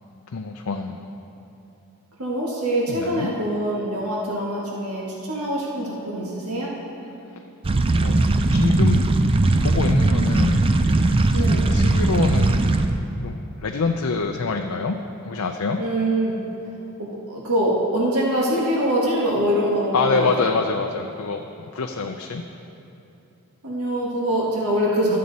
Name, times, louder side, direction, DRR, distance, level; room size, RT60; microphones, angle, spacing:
voice 1, 0.3-1.1 2.9-3.3 7.9-8.2 8.5-9.0 9.6-10.7 11.2-12.7 13.2-15.0 15.2-15.8 19.9-22.4, left 4 dB, 70° left, 3 dB, 0.5 m, -26 dB
voice 2, 2.2-6.7 11.3-11.8 15.8-16.4 17.0-20.5 23.6-25.2, right 1 dB, 80° right, -4 dB, 1.5 m, -24 dB
sound 1, 7.6-13.0, right 2 dB, 25° right, 0.4 m, -19 dB
13.0 x 7.5 x 4.0 m, 2.8 s
head